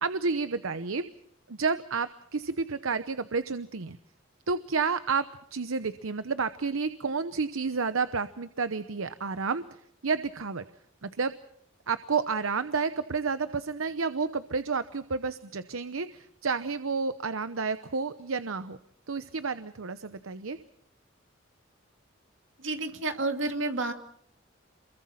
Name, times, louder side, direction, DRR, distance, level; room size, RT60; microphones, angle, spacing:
voice 1, 0.0-1.0 1.5-4.0 4.5-10.6 11.0-11.3 11.9-18.8 19.1-20.6, right 4 dB, 80° right, 12 dB, 0.9 m, -30 dB
voice 2, 22.6-23.9, right 2 dB, 65° right, 6 dB, 2.5 m, -30 dB
28.0 x 22.0 x 5.8 m, 0.68 s
head